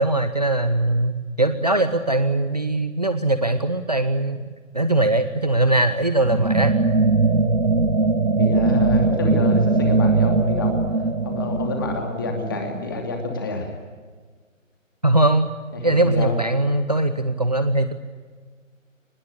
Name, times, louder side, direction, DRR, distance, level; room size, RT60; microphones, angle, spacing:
voice 1, 0.0-6.7 15.0-15.5 15.8-17.9, right 2 dB, 30° right, 10 dB, 0.9 m, -21 dB
sound 1, 6.2-13.0, right 3 dB, 85° right, 1.8 m, -20 dB
voice 2, 8.4-10.8 11.2-13.7 15.7-16.4, left 3 dB, 15° left, 3 dB, 2.7 m, -28 dB
24.0 x 20.5 x 9.9 m, 1.5 s
figure-of-eight pair, 165°, 40 cm